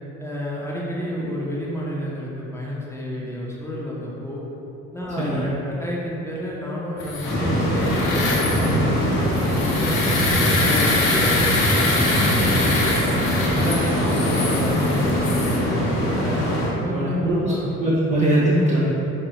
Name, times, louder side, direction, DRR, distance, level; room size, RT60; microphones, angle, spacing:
voice 1, 0.2-4.4 4.9-10.2 10.6-13.2 13.5-16.4 16.8-17.7, equal, 5° left, -5 dB, 0.9 m, -30 dB
sound 1, 7.0-15.6, left 3 dB, 80° left, 0.6 m, -25 dB
sound 2, 7.2-16.7, equal, 55° left, 1.3 m, -22 dB
voice 2, 16.9-18.9, right 1 dB, 20° right, -7 dB, 0.6 m, -21 dB
4.5 x 3.1 x 2.9 m, 2.9 s
figure-of-eight pair, 50°, 40 cm